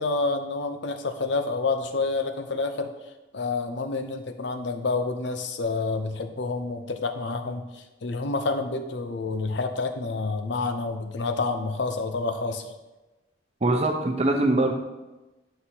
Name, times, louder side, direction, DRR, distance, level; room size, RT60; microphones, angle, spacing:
voice 1, 0.0-2.9 3.3-12.7, left 3 dB, 70° left, 6 dB, 0.7 m, -28 dB
voice 2, 13.6-14.7, right 2 dB, 35° right, 4 dB, 0.8 m, -22 dB
9.7 x 5.8 x 2.9 m, 1.1 s
head